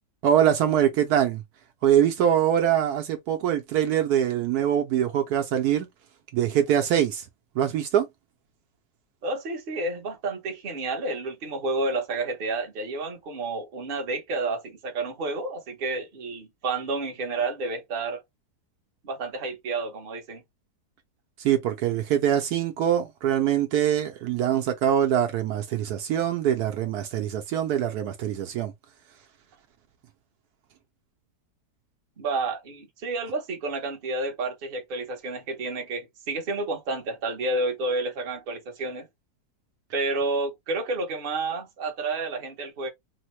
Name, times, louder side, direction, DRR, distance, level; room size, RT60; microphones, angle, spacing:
voice 1, 0.2-1.4 1.8-5.9 6.3-7.2 7.5-8.1 21.4-28.7, right 10 dB, 75° right, 1.1 m, -23 dB
voice 2, 9.2-18.2 19.0-20.4 32.2-39.1 39.9-42.9, right 3 dB, 40° right, 0.9 m, -30 dB
3.5 x 2.1 x 3.0 m
omnidirectional pair, 1.7 m